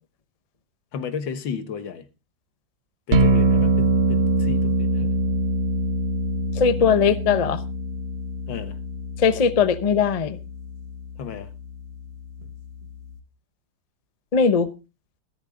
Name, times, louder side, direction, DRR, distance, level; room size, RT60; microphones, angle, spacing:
voice 1, 0.9-2.0 3.1-5.1 6.8-7.1 8.5-8.7 11.2-11.5, left 6 dB, 85° left, 2.0 m, -33 dB
sound 1, 3.1-13.2, right 2 dB, 40° right, 1.7 m, -24 dB
voice 2, 6.6-7.6 9.2-10.4 14.3-14.7, left 6 dB, 40° left, 0.5 m, -19 dB
14.0 x 12.5 x 3.7 m
omnidirectional pair, 2.0 m